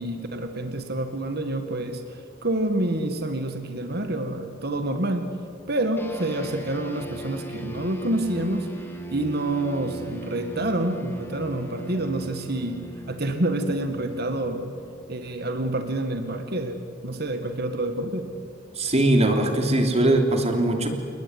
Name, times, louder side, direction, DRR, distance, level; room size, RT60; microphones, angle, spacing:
voice 1, 0.0-5.3 5.7-8.9 9.1-12.8 13.1-14.7 15.1-18.3, right 1 dB, 55° right, 6 dB, 2.0 m, -28 dB
sound 1, 6.0-15.7, right 1 dB, 10° left, 2.8 m, -40 dB
voice 2, 18.7-20.9, right 1 dB, 35° right, 4 dB, 3.2 m, -21 dB
30.0 x 19.5 x 9.7 m, 2.3 s
head